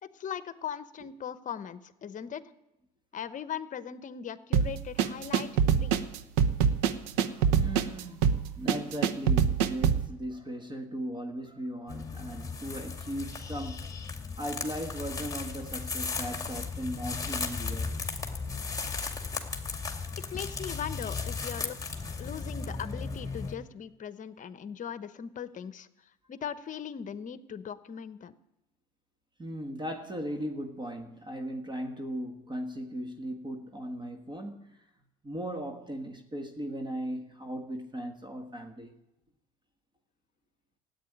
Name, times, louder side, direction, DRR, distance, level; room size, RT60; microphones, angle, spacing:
voice 1, 0.0-2.4 3.1-5.5 5.7-6.1 20.3-21.8 22.2-25.9 26.3-28.3, left 8 dB, 40° left, 1.0 m, -39 dB
sound 1, 4.5-10.1, right 7 dB, 85° right, 0.9 m, -25 dB
voice 2, 7.2-13.8 14.4-17.9 29.4-34.7 35.2-39.0, equal, 20° right, 1.6 m, -38 dB
sound 2, 11.9-23.6, left 4 dB, 15° left, 2.2 m, -36 dB
14.0 x 8.8 x 10.0 m
supercardioid pair, 95°, 20 cm